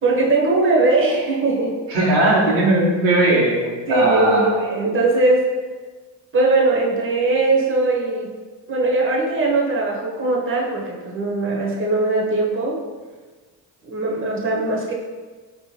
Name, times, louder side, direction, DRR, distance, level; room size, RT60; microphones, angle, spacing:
voice 1, 0.0-1.8 3.9-5.5 6.3-8.3 8.7-12.8 13.8-14.9, right 2 dB, 25° right, -3 dB, 1.0 m, -20 dB
voice 2, 1.9-4.5, right 1 dB, 80° right, -5 dB, 1.2 m, -18 dB
4.3 x 3.0 x 3.2 m, 1.4 s
hypercardioid pair, 60°, 48 cm